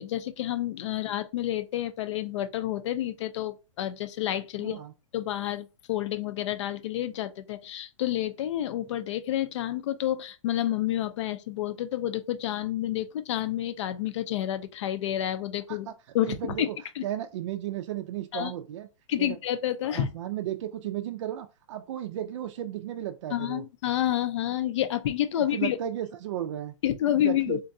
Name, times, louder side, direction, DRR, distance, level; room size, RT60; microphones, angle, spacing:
voice 1, 0.0-4.8 5.1-15.9 16.1-16.7 17.0-17.1 18.3-18.5 19.1-20.1 23.3-25.8 26.8-27.7, left 12 dB, 60° left, 0.5 m, -29 dB
voice 2, 4.6-4.9 15.7-15.9 16.2-16.8 17.0-18.9 19.2-19.4 19.8-23.6 25.4-26.7 27.1-27.6, right 11 dB, 60° right, 0.4 m, -34 dB
3.8 x 2.2 x 2.6 m
hypercardioid pair, 150°, 17 cm